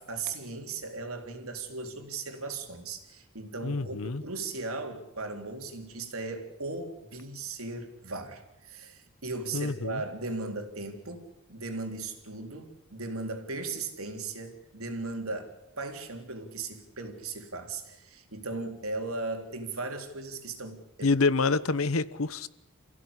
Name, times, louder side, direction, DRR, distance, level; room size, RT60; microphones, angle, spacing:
voice 1, 0.0-21.1, right 3 dB, 80° right, 3.7 m, -37 dB
voice 2, 3.6-4.2 9.5-10.0 21.0-22.5, left 3 dB, 75° left, 1.1 m, -27 dB
28.0 x 16.0 x 9.9 m
head